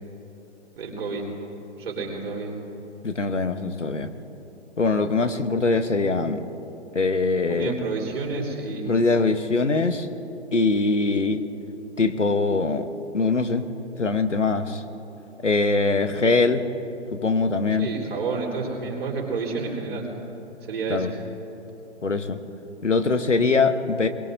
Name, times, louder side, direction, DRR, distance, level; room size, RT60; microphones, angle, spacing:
voice 1, 0.8-1.3 1.8-2.6 7.5-9.0 17.8-20.1 20.6-21.1, right 4 dB, 55° right, -2 dB, 4.3 m, -29 dB
voice 2, 3.0-4.1 4.8-6.4 6.9-7.7 8.9-10.1 10.5-11.4 12.0-12.9 13.1-13.6 14.0-14.8 15.4-16.6 17.1-17.9 20.9-21.1 22.0-22.4 22.8-24.1, left 3 dB, 85° left, 9 dB, 1.2 m, -22 dB
24.0 x 22.0 x 2.7 m, 2.8 s
figure-of-eight pair, 135°, 36 cm